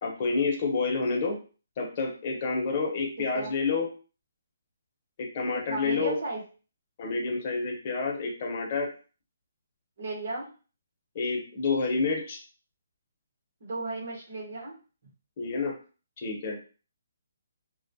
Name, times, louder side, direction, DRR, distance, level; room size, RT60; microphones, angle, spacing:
voice 1, 0.0-1.4 1.8-3.9 5.2-6.2 7.0-8.9 11.1-12.4 15.4-15.7 16.2-16.6, left 4 dB, 40° left, 0 dB, 0.9 m, -29 dB
voice 2, 3.2-3.5 5.5-6.4 10.0-10.5 13.6-14.7, right 2 dB, 55° right, -2 dB, 1.0 m, -35 dB
2.3 x 2.1 x 2.7 m, 0.36 s
hypercardioid pair, 150°, 0 cm